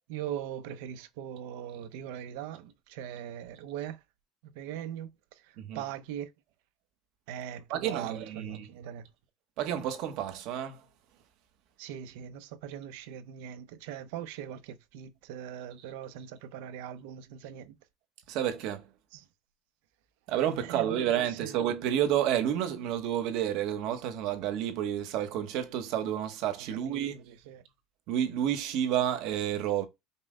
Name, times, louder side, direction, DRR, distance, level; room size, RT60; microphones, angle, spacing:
voice 1, 0.1-4.0 4.4-6.3 7.3-9.0 11.8-17.8 19.1-19.2 20.6-21.6 26.7-27.6, right 10 dB, 80° right, 0.6 m, -41 dB
voice 2, 7.7-8.7 9.6-10.8 18.3-18.8 20.3-27.2 28.1-29.9, right 10 dB, 50° right, 0.9 m, -30 dB
5.4 x 2.1 x 3.7 m
cardioid pair, 180°, 0 cm